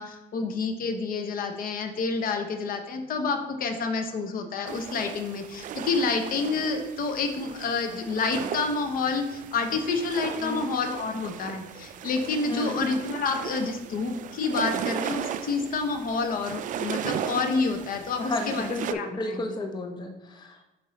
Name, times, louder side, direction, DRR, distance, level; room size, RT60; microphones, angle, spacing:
voice 1, 0.0-19.5, left 4 dB, 55° left, 6 dB, 0.8 m, -29 dB
sound 1, 4.7-18.9, right 9 dB, 50° right, 0.4 m, -36 dB
voice 2, 10.4-10.7 12.5-12.8 18.2-20.7, left 2 dB, 25° left, 4 dB, 0.6 m, -33 dB
5.5 x 4.6 x 4.2 m, 0.98 s
cardioid pair, 110°, 17 cm